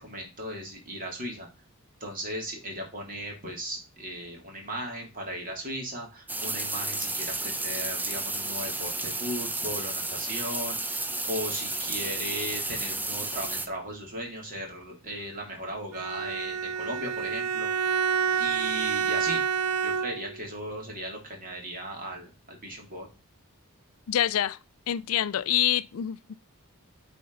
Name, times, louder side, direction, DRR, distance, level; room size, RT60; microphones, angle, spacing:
voice 1, 0.0-1.5 2.0-17.9 18.4-19.4 19.8-23.1, equal, 40° right, 3.1 m, -37 dB
sound 1, 6.3-13.7, right 2 dB, 10° right, 0.6 m, -32 dB
Bowed string instrument, 15.9-20.4, right 7 dB, 80° right, 0.4 m, -28 dB
voice 2, 24.1-24.6 24.9-26.3, left 11 dB, 75° left, 0.4 m, -26 dB
8.5 x 4.3 x 4.0 m
head